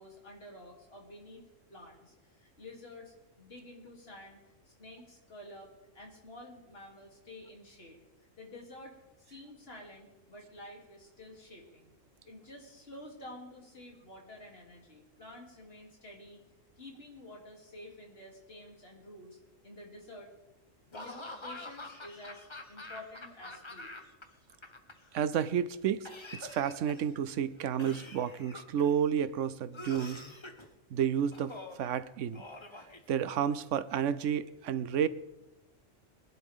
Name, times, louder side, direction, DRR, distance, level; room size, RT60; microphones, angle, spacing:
voice 1, 0.0-1.4 1.7-8.0 8.4-11.9 12.3-16.4 16.8-20.3 20.9-23.9, left 1 dB, 50° left, -1 dB, 3.3 m, -50 dB
Laughter / Cough, 20.9-24.2 24.5-25.4 26.1-27.2 27.8-29.0 29.7-30.7 31.3-31.9 32.3-33.5, left 2 dB, 25° left, 1.1 m, -46 dB
voice 2, 25.1-30.2 30.9-32.4 33.1-35.1, right 8 dB, 70° right, 15 dB, 1.0 m, -31 dB
22.0 x 11.5 x 3.7 m, 1.0 s
omnidirectional pair, 1.3 m